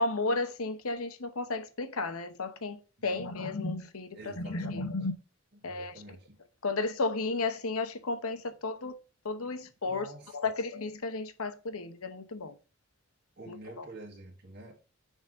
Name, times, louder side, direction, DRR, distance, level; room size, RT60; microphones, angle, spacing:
voice 1, 0.0-5.1 5.6-5.9 6.6-8.9 9.2-10.1 10.3-12.5 13.5-13.9, left 3 dB, 70° left, 0.9 m, -33 dB
voice 2, 4.1-4.9 5.6-6.4 9.8-10.5 13.4-14.9, right 2 dB, 45° right, 1.6 m, -48 dB
6.3 x 4.0 x 6.2 m
head